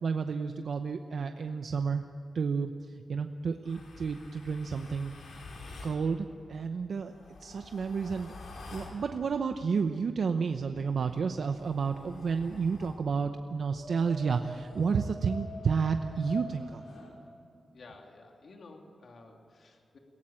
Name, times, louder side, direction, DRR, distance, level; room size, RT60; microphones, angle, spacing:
voice 1, 0.0-2.1 2.3-5.1 5.8-7.1 7.4-8.3 8.7-16.8, right 5 dB, 70° right, 7 dB, 0.8 m, -31 dB
sound 1, 3.6-6.0 7.0-9.0 10.7-13.0 13.7-17.1, left 2 dB, 85° left, 4.6 m, -47 dB
voice 2, 17.7-20.0, left 3 dB, 60° left, 2 dB, 2.9 m, -52 dB
22.5 x 17.5 x 8.8 m, 2.5 s
wide cardioid pair, 110°, 0 cm